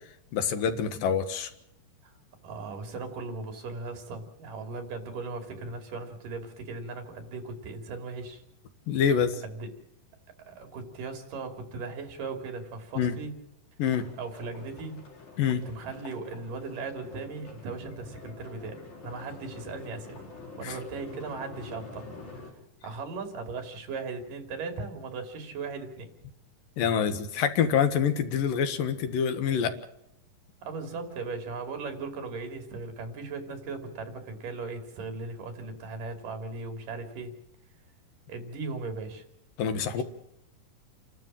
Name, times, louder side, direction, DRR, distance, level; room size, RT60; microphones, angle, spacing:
voice 1, 0.3-1.5 8.9-9.4 13.0-13.1 13.8-14.0 15.4-15.6 20.6-20.8 26.8-29.7 39.6-40.0, left 7 dB, 80° left, 9 dB, 3.2 m, -26 dB
voice 2, 2.4-8.4 9.4-9.7 10.5-13.3 14.1-15.0 15.7-20.2 20.6-22.1 22.8-26.1 30.6-37.3 38.3-39.2 39.9-40.0, right 4 dB, 75° right, 6 dB, 4.4 m, -38 dB
sound 1, 13.9-22.5, left 3 dB, 55° left, 6.9 m, -47 dB
29.5 x 12.5 x 7.4 m, 0.80 s
omnidirectional pair, 3.9 m